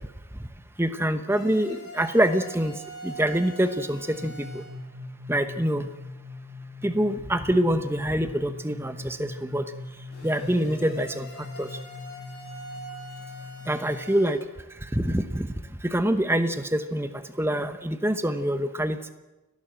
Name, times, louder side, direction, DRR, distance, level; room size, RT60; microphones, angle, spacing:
voice 1, 0.8-2.7 3.0-4.6 5.3-5.9 6.8-9.6 10.2-11.3 11.6-11.7 13.7-14.4 14.9-15.5 15.8-17.1 17.4-19.1, right 1 dB, 10° right, 9 dB, 1.0 m, -25 dB
sound 1, 1.3-4.7 10.1-14.4, right 1 dB, 50° left, 6.5 m, -43 dB
sound 2, 4.1-14.0, left 2 dB, 60° right, 1.7 m, -41 dB
30.0 x 11.5 x 7.7 m, 1.1 s
head